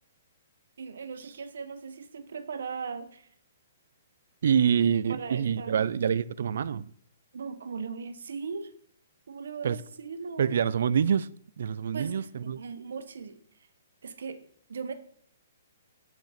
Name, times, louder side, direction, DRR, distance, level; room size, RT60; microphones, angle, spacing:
voice 1, 0.8-3.3 5.1-5.8 7.3-8.7 9.3-10.5 11.9-13.7 14.0-14.4 14.7-14.9, right 5 dB, 80° right, 1.2 m, -38 dB
voice 2, 4.4-6.9 9.6-9.8 10.4-11.3 11.6-12.6, right 8 dB, 65° right, 0.5 m, -26 dB
9.3 x 6.0 x 5.8 m
hypercardioid pair, 170°, 0 cm